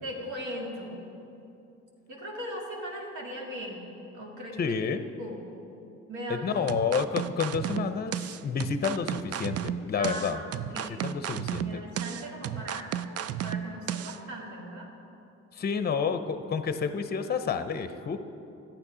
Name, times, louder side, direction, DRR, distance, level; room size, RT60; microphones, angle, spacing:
voice 1, 0.0-1.1 2.1-4.8 5.2-5.4 6.1-6.4 10.0-11.2 11.6-14.9, equal, 75° right, -2 dB, 2.1 m, -39 dB
voice 2, 4.6-5.0 6.3-10.4 10.9-11.8 15.5-18.2, left 6 dB, 30° left, 10 dB, 0.6 m, -30 dB
sound 1, 6.7-14.2, right 10 dB, 55° right, 0.4 m, -33 dB
12.0 x 8.8 x 4.9 m, 2.7 s
cardioid pair, 90°, 30 cm